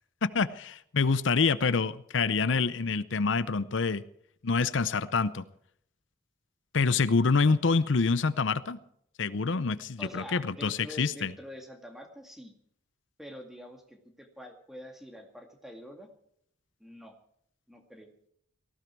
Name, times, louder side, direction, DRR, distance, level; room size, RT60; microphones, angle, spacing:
voice 1, 0.2-4.0 4.4-5.4 6.7-8.8 9.2-11.3, left 4 dB, 80° left, 15 dB, 0.7 m, -26 dB
voice 2, 10.0-12.5 13.2-16.1 16.8-17.1 17.7-18.1, equal, ahead, 3 dB, 2.1 m, -46 dB
18.5 x 15.5 x 4.6 m, 0.68 s
head